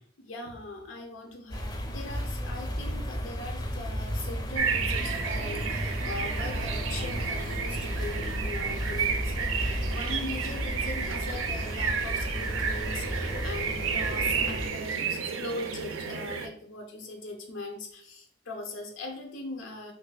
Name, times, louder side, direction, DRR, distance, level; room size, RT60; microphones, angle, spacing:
voice 1, 0.2-19.9, left 2 dB, 85° left, 3 dB, 0.6 m, -40 dB
sound 1, 1.5-14.7, equal, 20° left, 0.5 m, -33 dB
sound 2, 4.6-16.5, right 6 dB, 90° right, 0.4 m, -32 dB
Singing / Musical instrument, 4.8-14.3, right 3 dB, 20° right, 0.6 m, -47 dB
2.6 x 2.5 x 3.9 m, 0.62 s
head